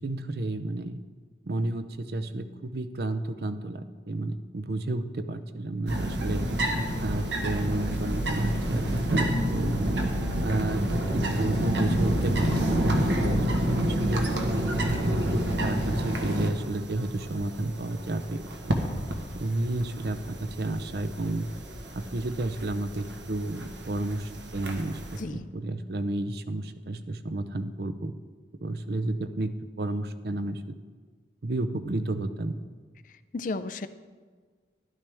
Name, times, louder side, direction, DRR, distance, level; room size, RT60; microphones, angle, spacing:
voice 1, 0.0-1.0 1.5-6.4 7.0-9.8 10.4-10.8 11.1-14.3 14.8-15.2 15.6-18.7 19.3-21.5 21.9-25.0 25.3-28.1 28.6-29.5 29.8-30.8 31.4-32.6, right 2 dB, 60° right, 11 dB, 0.6 m, -31 dB
sound 1, 5.9-25.2, right 1 dB, 80° right, 1.3 m, -29 dB
voice 2, 25.2-25.5 33.3-33.9, left 3 dB, 45° left, 12 dB, 0.4 m, -33 dB
12.5 x 11.5 x 3.5 m, 1.5 s
head